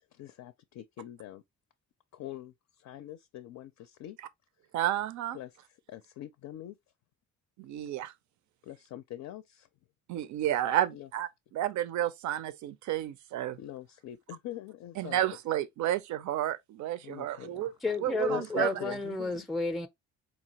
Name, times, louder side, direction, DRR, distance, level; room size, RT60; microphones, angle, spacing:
voice 1, 0.1-1.4 2.1-4.2 5.3-6.8 8.6-9.7 10.9-11.1 13.5-15.2 17.0-17.8 18.3-19.5, left 13 dB, 65° left, 0.4 m, -44 dB
voice 2, 4.7-5.4 7.6-8.1 10.1-13.6 15.0-17.7 18.0-18.7, right 12 dB, 70° right, 0.5 m, -31 dB
voice 3, 17.8-19.9, left 3 dB, ahead, 0.4 m, -31 dB
4.1 x 2.3 x 2.8 m
cardioid pair, 90°, 30 cm